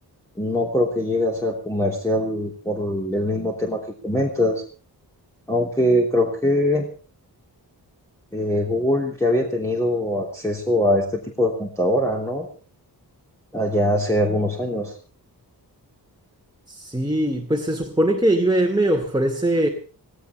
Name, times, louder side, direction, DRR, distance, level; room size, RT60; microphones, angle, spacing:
voice 1, 0.4-4.6 5.5-6.8 8.3-12.5 13.5-15.0, left 1 dB, 5° left, -1 dB, 3.2 m, -22 dB
voice 2, 16.8-19.7, right 1 dB, 10° right, 2 dB, 2.4 m, -21 dB
18.5 x 17.0 x 4.5 m, 0.40 s
wide cardioid pair, 155°, 39 cm